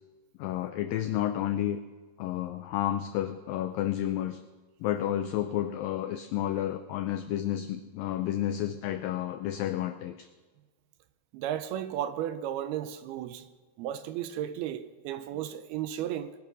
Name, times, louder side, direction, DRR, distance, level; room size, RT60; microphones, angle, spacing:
voice 1, 0.4-1.8 2.2-4.4 4.8-10.3, left 12 dB, 85° left, 2.0 m, -31 dB
voice 2, 11.3-13.5 13.8-16.3, right 11 dB, 80° right, 2.5 m, -34 dB
21.0 x 10.5 x 6.2 m
omnidirectional pair, 4.8 m